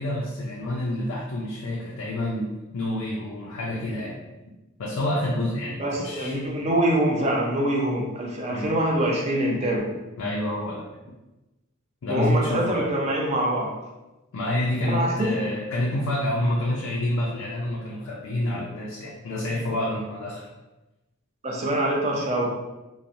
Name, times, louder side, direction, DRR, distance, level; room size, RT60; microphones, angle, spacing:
voice 1, 0.0-4.2 4.8-6.5 8.5-8.8 10.2-10.9 12.0-12.9 14.3-20.4, left 1 dB, 85° left, -2 dB, 0.4 m, -28 dB
voice 2, 5.8-9.9 12.1-13.7 14.8-15.4 21.4-22.5, right 1 dB, 30° right, -1 dB, 0.5 m, -24 dB
2.9 x 2.0 x 2.5 m, 1.0 s
head